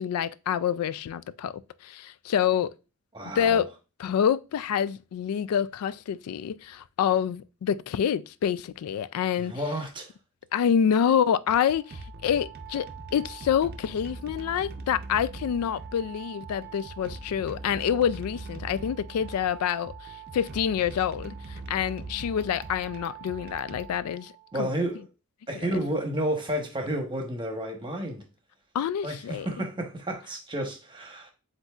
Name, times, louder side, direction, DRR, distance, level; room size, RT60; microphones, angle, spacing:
voice 1, 0.0-2.7 3.4-3.7 4.0-9.5 10.5-12.9 13.1-24.3 24.6-24.7 28.7-29.5, left 8 dB, 80° left, 0.3 m, -27 dB
voice 2, 3.1-3.6 9.4-10.1 24.5-25.0 25.5-28.2 29.0-31.3, right 1 dB, 20° right, 1.0 m, -31 dB
sound 1, 11.5-24.6, right 3 dB, 45° right, 0.5 m, -41 dB
7.9 x 2.7 x 2.4 m
head